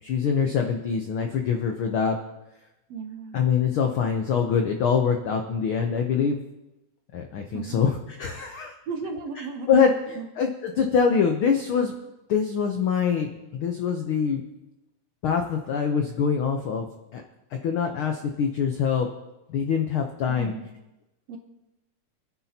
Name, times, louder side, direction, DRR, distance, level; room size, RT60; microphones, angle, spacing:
voice 1, 0.0-2.2 3.3-6.4 7.1-8.7 9.4-11.9 12.3-14.4 15.2-16.9 17.1-17.2 17.6-19.1 19.5-20.5, left 6 dB, 85° left, 4 dB, 1.1 m, -24 dB
voice 2, 2.9-3.4 7.5-7.8 8.9-10.3 12.0-12.1 20.3-20.7 21.3-21.4, right 5 dB, 65° right, 4 dB, 1.8 m, -35 dB
27.5 x 10.0 x 2.8 m, 0.96 s
omnidirectional pair, 3.5 m